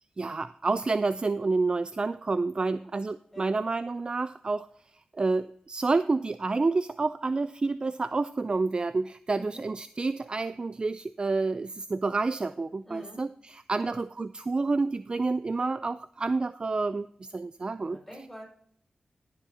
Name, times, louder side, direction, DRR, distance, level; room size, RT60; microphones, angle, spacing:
voice 1, 0.2-4.7 5.2-13.3 13.7-17.1 17.3-18.0, right 3 dB, 35° right, 14 dB, 0.3 m, -29 dB
voice 2, 2.5-2.9 3.3-3.6 9.3-9.7 12.8-13.2 13.7-14.0 17.8-18.4, equal, 5° left, -2 dB, 5.0 m, -46 dB
18.0 x 7.2 x 2.7 m, 0.65 s
cardioid pair, 60°, 3 cm